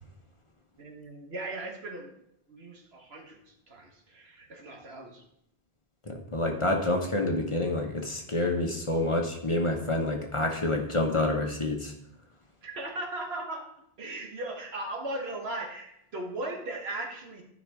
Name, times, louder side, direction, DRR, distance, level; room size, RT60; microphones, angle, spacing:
voice 1, 0.8-2.1 2.5-5.2 12.6-13.6 14.0-17.4, right 2 dB, 75° right, 2 dB, 1.6 m, -38 dB
voice 2, 6.1-11.9, left 2 dB, 30° left, 2 dB, 1.0 m, -28 dB
12.0 x 5.2 x 3.5 m, 0.75 s
omnidirectional pair, 1.1 m